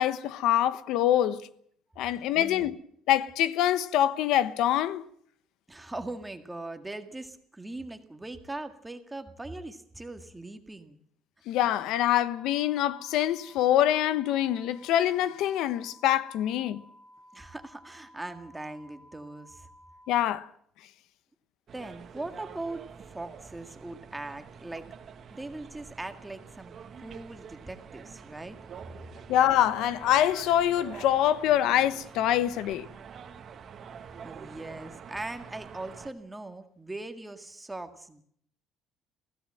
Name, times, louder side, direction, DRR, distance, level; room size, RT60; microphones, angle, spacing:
voice 1, 0.0-1.5 2.0-2.7 3.1-5.0 11.5-16.8 20.1-20.5 29.3-32.8, left 12 dB, 85° left, 1.1 m, -25 dB
voice 2, 2.3-2.7 5.7-11.0 17.3-19.7 21.7-24.9 25.3-28.6 34.2-38.2, right 2 dB, 10° right, 1.9 m, -40 dB
sound 1, 12.2-20.2, equal, 15° left, 6.4 m, -55 dB
sound 2, 21.7-36.1, right 7 dB, 45° right, 1.7 m, -47 dB
23.5 x 16.0 x 7.7 m
cardioid pair, 140°, 0 cm